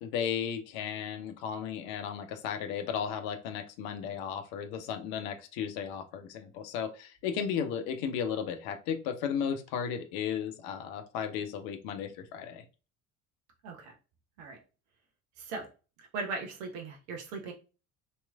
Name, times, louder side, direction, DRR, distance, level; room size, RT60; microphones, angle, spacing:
voice 1, 0.0-12.6, left 7 dB, 55° left, 8 dB, 0.7 m, -35 dB
voice 2, 13.6-13.9 14.4-14.6 15.4-15.7 16.0-17.5, right 4 dB, 60° right, 1 dB, 0.9 m, -38 dB
3.0 x 3.0 x 2.3 m, 0.33 s
figure-of-eight pair, 60°, 42 cm